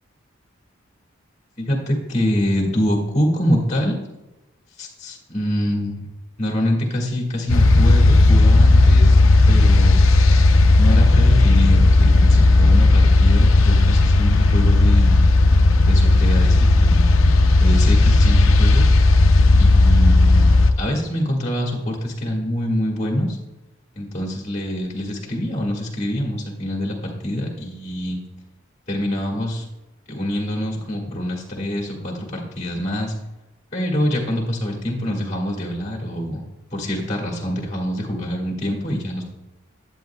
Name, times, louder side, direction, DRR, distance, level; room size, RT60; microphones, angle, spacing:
voice 1, 1.6-4.0 4.8-6.0 6.4-9.2 9.5-10.1 10.8-15.2 15.8-17.0 17.6-18.8 19.6-20.5 20.8-23.4 24.0-28.2 28.9-29.6 30.1-33.1 33.7-36.4 36.7-39.2, equal, 35° left, -2 dB, 1.8 m, -25 dB
sound 1, 7.5-20.7, left 2 dB, 75° left, 0.6 m, -13 dB
10.5 x 8.2 x 2.3 m, 1.0 s
head